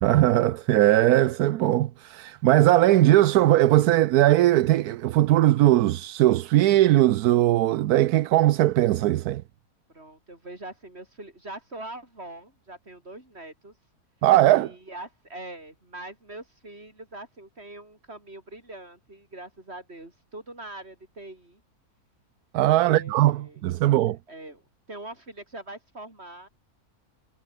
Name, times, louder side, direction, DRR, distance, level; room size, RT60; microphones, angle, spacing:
voice 1, 0.0-9.4 14.2-14.7 22.5-24.2, right 14 dB, 80° right, 1.1 m, -19 dB
voice 2, 9.9-13.7 14.5-21.6 22.7-23.6 24.3-24.6 24.9-26.5, right 2 dB, 40° right, 6.0 m, -42 dB
omnidirectional pair, 1.6 m